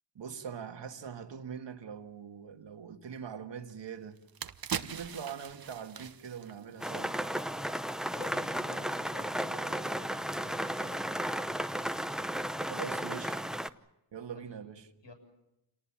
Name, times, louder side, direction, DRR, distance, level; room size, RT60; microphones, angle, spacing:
voice 1, 0.2-4.2 4.7-7.2 12.6-13.4 14.1-14.9, right 7 dB, 70° right, 1.8 m, -42 dB
sound 1, 3.7-3.8 4.2-7.4 7.8-7.9, right 7 dB, 50° right, 1.0 m, -41 dB
sound 2, 6.8-13.7, equal, ahead, 0.8 m, -34 dB
voice 2, 8.1-11.2 14.3-14.6 15.0-15.1, left 3 dB, 70° left, 7.3 m, -50 dB
27.5 x 19.0 x 7.3 m
cardioid pair, 80°, 45 cm